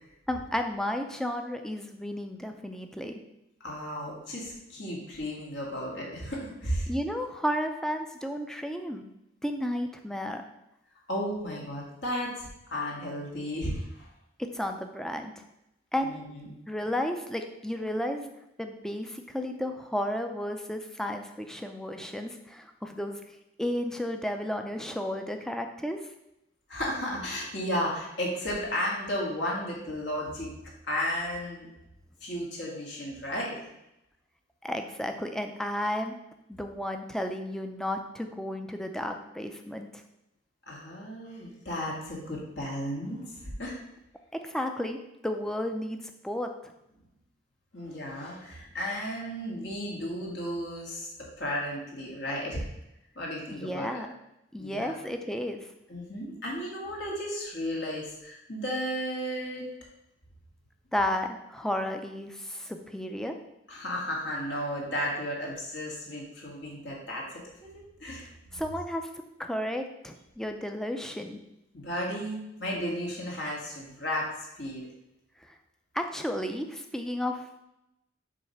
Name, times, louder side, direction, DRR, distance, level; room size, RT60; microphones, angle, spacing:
voice 1, 0.3-3.2 6.9-9.1 9.4-10.4 14.4-15.4 15.9-16.1 16.7-18.3 18.6-23.3 23.6-26.0 34.6-36.2 36.5-40.0 44.3-45.0 45.2-46.7 53.5-54.1 54.5-55.7 60.9-63.3 68.5-69.1 69.4-71.4 75.5-75.6 75.9-77.5, left 1 dB, 5° left, 5 dB, 0.5 m, -33 dB
voice 2, 3.6-6.9 11.1-14.1 16.0-16.5 26.7-30.5 30.9-31.7 32.2-33.6 40.7-43.8 47.7-51.1 51.4-52.7 53.2-54.0 54.6-54.9 55.9-59.7 63.7-67.4 68.0-68.3 71.7-74.3 74.6-74.8, equal, 70° left, -3 dB, 1.9 m, -34 dB
7.3 x 3.2 x 5.7 m, 0.87 s
head